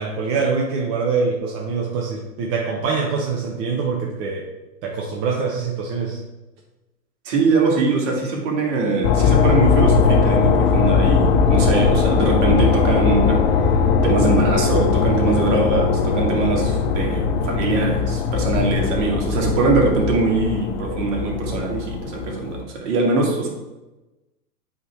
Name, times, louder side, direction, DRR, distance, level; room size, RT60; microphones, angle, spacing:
voice 1, 0.0-4.5 4.8-6.2, right 4 dB, 30° right, -1 dB, 0.8 m, -24 dB
voice 2, 7.2-13.7 14.0-23.5, right 3 dB, 45° right, -1 dB, 2.1 m, -22 dB
sound 1, 9.0-22.6, left 5 dB, 35° left, 0.7 m, -19 dB
7.9 x 3.7 x 4.6 m, 1.1 s
hypercardioid pair, 120°, 48 cm